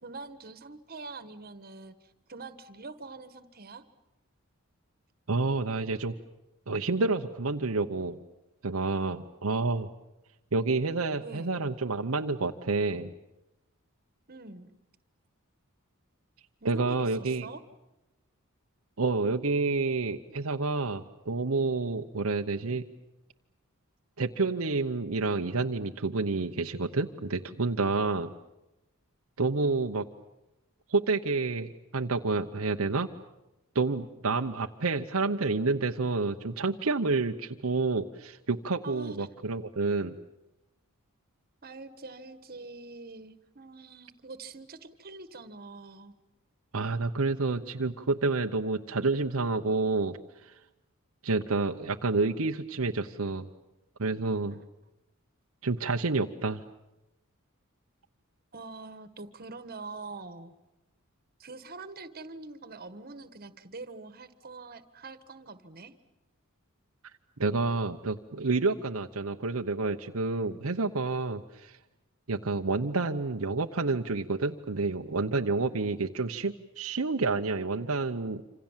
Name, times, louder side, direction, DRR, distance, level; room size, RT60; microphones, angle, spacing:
voice 1, 0.0-3.8 11.2-11.6 14.3-14.8 16.6-17.6 38.8-39.3 41.6-46.1 54.4-54.6 58.5-60.5 61.4-65.9 70.4-70.6, right 3 dB, 45° right, 12 dB, 1.6 m, -44 dB
voice 2, 5.3-6.1 6.7-8.2 8.6-9.9 10.5-13.1 16.6-17.5 19.0-22.8 24.2-28.3 29.4-30.1 30.9-33.1 33.7-40.2 46.7-50.2 50.4-50.5 51.2-53.5 54.0-54.6 55.6-56.6 67.4-71.8 72.3-78.4, right 3 dB, 75° right, 4 dB, 0.9 m, -29 dB
27.0 x 26.5 x 7.4 m, 0.95 s
head